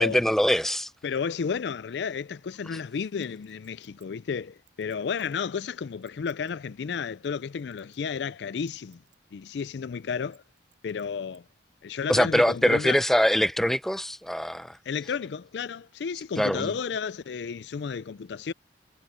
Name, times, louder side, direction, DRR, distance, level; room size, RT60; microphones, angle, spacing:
voice 1, 0.0-0.9 12.1-14.8 16.4-16.7, equal, ahead, 0.7 m, -23 dB
voice 2, 1.0-9.0 9.3-10.4 10.8-11.4 11.8-13.0 14.9-18.5, left 6 dB, 65° left, 0.4 m, -32 dB
Chink clink, 3.2-5.4 5.9-6.5 7.2-8.3 8.6-9.2 9.5-9.6 10.2-11.4 11.9-12.0, right 16 dB, 85° right, 6.8 m, -63 dB
head